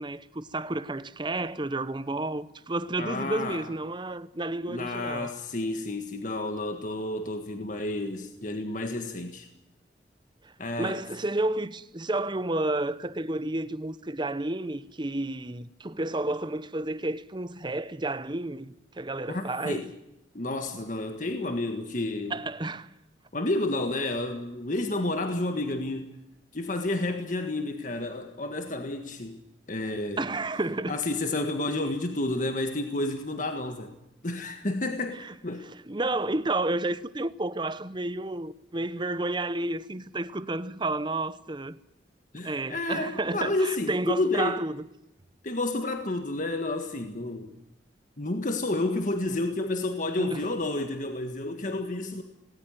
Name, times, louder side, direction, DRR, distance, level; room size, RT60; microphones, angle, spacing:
voice 1, 0.0-5.3 10.4-10.5 10.8-19.9 22.3-22.9 30.2-31.0 35.2-35.3 35.9-41.8 42.4-44.8 50.2-50.5, right 2 dB, 25° right, 0.8 m, -31 dB
voice 2, 3.0-3.6 4.7-9.5 10.6-11.0 19.3-19.9 20.3-22.4 23.3-26.2 26.5-29.4 29.7-30.2 30.9-33.9 34.2-35.7 42.3-44.6 45.4-47.6 48.2-52.2, left 2 dB, 45° left, 1.7 m, -30 dB
19.0 x 18.0 x 9.0 m
head